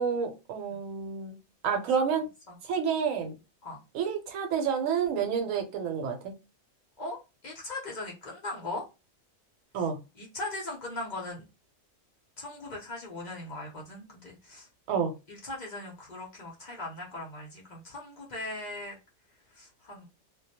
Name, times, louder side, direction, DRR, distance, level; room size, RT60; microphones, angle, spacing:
voice 1, 0.0-1.4 1.6-2.3 2.6-3.4 3.9-6.3 9.7-10.0 14.9-15.1, right 6 dB, 75° right, 1.0 m, -29 dB
voice 2, 7.4-8.8 10.2-11.4 12.4-14.7 15.3-18.9 19.5-20.1, left 2 dB, 50° left, 0.6 m, -39 dB
2.2 x 2.0 x 2.7 m
omnidirectional pair, 1.4 m